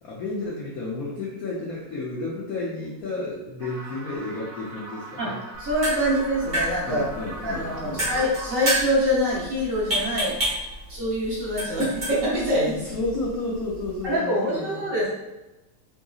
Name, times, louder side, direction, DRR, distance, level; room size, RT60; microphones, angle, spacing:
voice 1, 0.0-5.4 6.8-8.2 12.8-14.8, left 2 dB, 90° left, -5 dB, 0.7 m, -32 dB
sound 1, 3.6-8.7, right 2 dB, 75° right, 1.5 m, -40 dB
sound 2, 5.5-14.1, right 1 dB, 25° right, 1.2 m, -31 dB
voice 2, 5.6-7.0 7.4-10.4 10.9-12.9 14.0-15.1, equal, 55° right, -6 dB, 1.0 m, -25 dB
4.0 x 3.7 x 2.4 m, 1.0 s
omnidirectional pair, 2.4 m